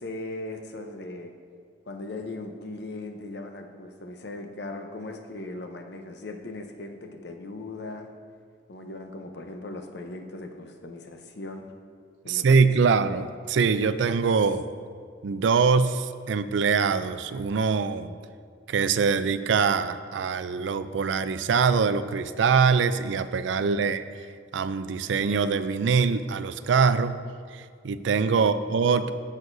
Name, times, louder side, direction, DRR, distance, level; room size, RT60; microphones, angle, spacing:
voice 1, 0.0-1.3 1.9-8.1 8.7-11.7 12.2-13.0 23.6-23.9 28.3-28.5, left 2 dB, 60° left, 5 dB, 0.7 m, -39 dB
voice 2, 12.3-14.6 15.2-18.1 18.7-24.0 24.5-27.2 27.5-29.1, right 5 dB, 75° right, 13 dB, 0.4 m, -23 dB
15.5 x 6.3 x 2.6 m, 2.1 s
head